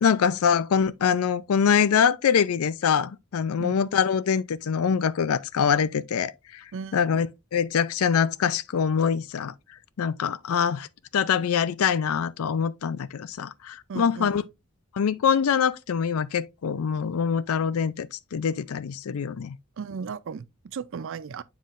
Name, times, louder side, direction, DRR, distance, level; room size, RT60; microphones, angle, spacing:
voice 1, 0.0-6.6 6.9-9.5 10.0-10.9 11.1-14.4 14.9-19.6, left 7 dB, 85° left, 0.4 m, -24 dB
voice 2, 13.9-14.4 19.8-21.4, right 5 dB, 65° right, 0.4 m, -35 dB
7.3 x 5.6 x 2.5 m
head